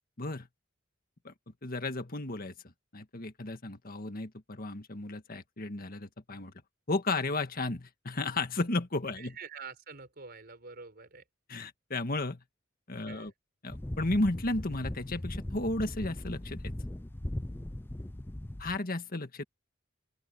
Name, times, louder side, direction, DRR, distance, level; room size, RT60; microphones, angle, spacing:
voice 1, 1.6-2.5 2.9-6.5 6.9-9.3 11.5-12.4 12.9-13.3 13.6-16.7 18.6-19.4, left 2 dB, 45° left, 1.8 m, -33 dB
voice 2, 9.2-11.2 13.1-13.3, right 5 dB, 50° right, 4.4 m, -46 dB
sound 1, 13.7-18.8, left 1 dB, 10° left, 0.5 m, -39 dB
open air
head